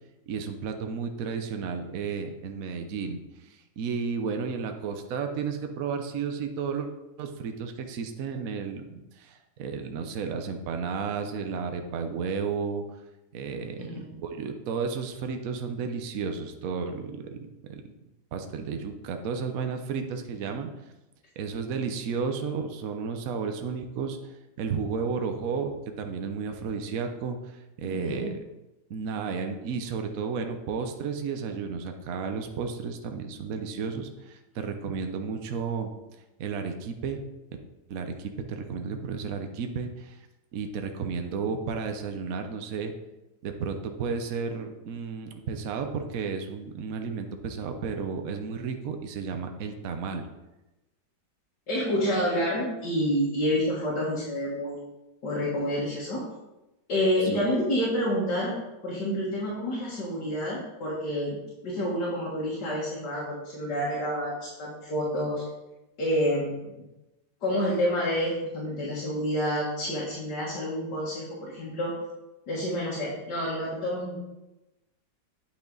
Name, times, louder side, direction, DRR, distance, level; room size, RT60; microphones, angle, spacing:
voice 1, 0.3-6.9 7.2-12.8 13.3-17.4 17.7-17.8 18.3-20.7 21.4-24.2 24.6-28.4 28.9-35.9 36.4-37.2 37.9-40.2 40.5-42.9 43.4-50.2 57.3-57.5, right 5 dB, 60° right, 6 dB, 1.1 m, -33 dB
voice 2, 27.8-28.3 51.7-54.8 55.2-56.2 56.9-58.6 58.8-61.4 61.6-65.4 66.0-66.8 67.4-71.9 72.5-74.2, equal, 75° left, -7 dB, 2.4 m, -28 dB
8.8 x 5.9 x 4.0 m, 0.99 s
omnidirectional pair, 1.8 m